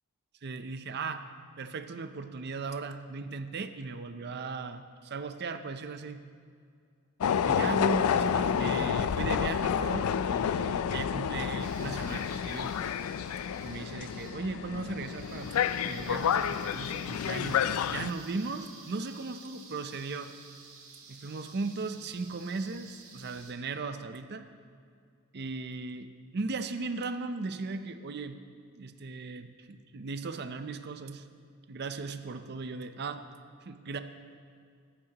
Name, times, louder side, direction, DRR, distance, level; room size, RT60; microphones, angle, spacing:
voice 1, 0.4-1.3 1.6-6.2 7.4-12.7 13.6-15.5 15.8-20.3 21.1-24.5 25.3-26.1 26.3-28.4 28.8-31.2 31.7-33.2 33.7-34.0, right 4 dB, 50° right, 9 dB, 0.6 m, -37 dB
sound 1, 7.2-18.1, left 8 dB, 80° left, 0.3 m, -29 dB
sound 2, 11.6-23.5, right 4 dB, 75° right, 1.9 m, -52 dB
14.0 x 12.0 x 2.9 m, 2.2 s
head